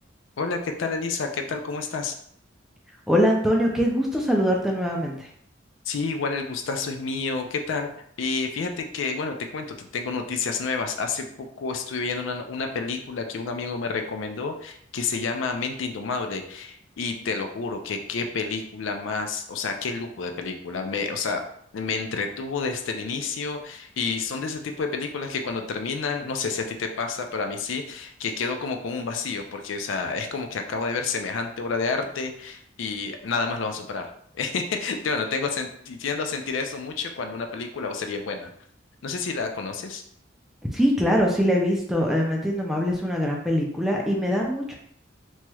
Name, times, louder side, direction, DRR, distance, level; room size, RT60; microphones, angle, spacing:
voice 1, 0.4-2.1 5.9-7.9 8.2-21.4 21.7-38.5 39.0-40.0, left 4 dB, 80° left, 5 dB, 0.4 m, -29 dB
voice 2, 3.1-5.3 40.7-44.7, equal, ahead, -1 dB, 0.4 m, -23 dB
3.0 x 3.0 x 2.3 m, 0.66 s
head